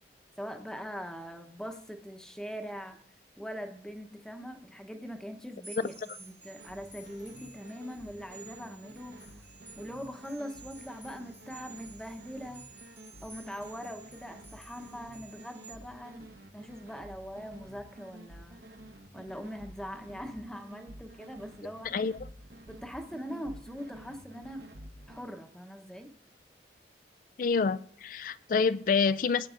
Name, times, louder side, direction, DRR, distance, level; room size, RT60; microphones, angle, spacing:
voice 1, 0.4-3.0 3.4-5.9 6.2-9.4 9.8-12.9 13.2-16.3 16.5-18.7 19.1-21.9 22.7-24.7 25.1-26.1, equal, 5° left, 5 dB, 0.9 m, -42 dB
sound 1, 5.6-15.8, right 4 dB, 10° right, 1.1 m, -53 dB
sound 2, 6.6-25.2, right 1 dB, 65° right, 1.1 m, -51 dB
voice 2, 21.8-22.2 27.4-29.5, left 5 dB, 50° left, 16 dB, 0.3 m, -27 dB
20.0 x 9.1 x 2.5 m, 0.64 s
head